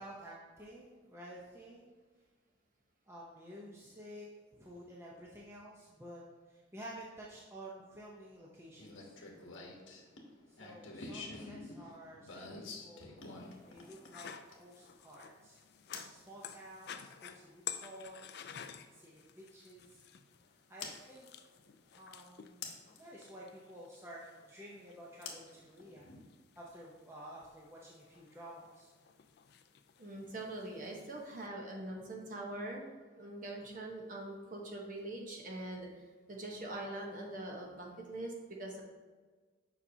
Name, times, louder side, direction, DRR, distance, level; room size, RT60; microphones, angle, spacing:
voice 1, 0.0-2.0 3.1-6.2 6.5-9.2 9.7-9.8 10.5-13.1 13.7-15.6 16.1-18.5 18.9-20.0 20.7-21.3 21.9-24.2 24.5-26.1 26.6-28.9, right 1 dB, 15° right, -4 dB, 0.6 m, -51 dB
sound 1, 8.8-14.8 15.9-16.2 18.1-18.2 20.8-21.0 22.6-23.0 25.2-26.2, left 3 dB, 80° left, 1.0 m, -47 dB
sound 2, 13.2-31.5, left 9 dB, 55° left, 0.3 m, -52 dB
voice 2, 30.0-32.9 33.2-35.9 36.3-38.8, right 1 dB, 40° right, 0 dB, 1.0 m, -43 dB
7.1 x 5.6 x 2.7 m, 1.4 s
head